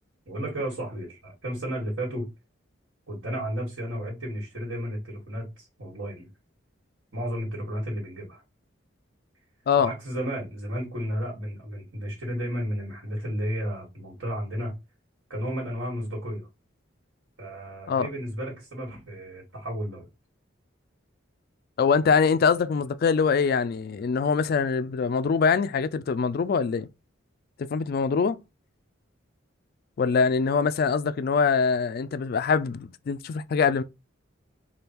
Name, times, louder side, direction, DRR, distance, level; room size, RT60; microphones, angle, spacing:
voice 1, 0.3-2.2 3.1-6.3 7.1-8.4 9.8-14.7 15.3-16.5 17.4-20.1, equal, 70° right, 1.7 m, -33 dB
voice 2, 21.8-26.9 27.7-28.4 30.0-33.8, left 5 dB, 50° left, 0.3 m, -23 dB
3.4 x 2.3 x 4.3 m
head